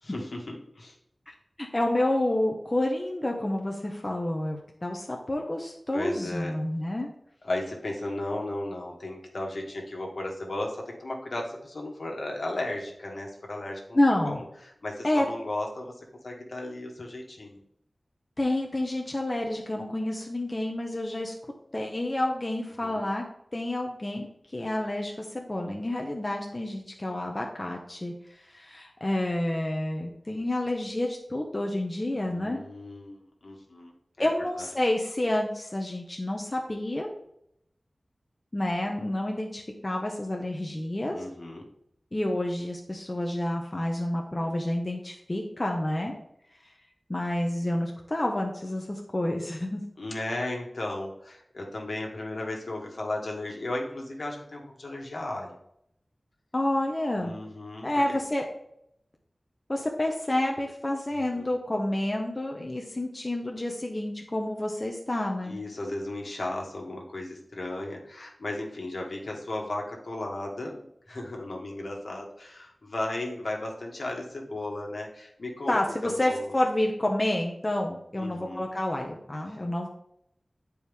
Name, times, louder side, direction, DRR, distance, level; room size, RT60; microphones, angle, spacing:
voice 1, 0.0-1.0 5.9-6.5 7.4-14.0 14.2-14.4 14.8-15.9 16.2-17.6 22.8-23.0 32.2-34.3 34.6-34.7 41.1-41.7 50.0-55.6 57.2-58.2 61.1-61.5 65.4-76.5 78.2-78.6 79.5-79.6, left 1 dB, 70° left, 0 dB, 1.7 m, -35 dB
voice 2, 1.3-7.1 13.9-14.4 15.0-15.3 18.4-21.3 21.7-23.2 23.5-32.6 34.2-37.1 38.5-41.2 42.1-46.1 47.1-49.8 56.5-57.3 57.8-58.4 59.7-65.6 75.7-79.9, left 1 dB, 35° left, 1 dB, 1.0 m, -29 dB
9.2 x 4.7 x 3.5 m, 0.75 s
wide cardioid pair, 65°, 0 cm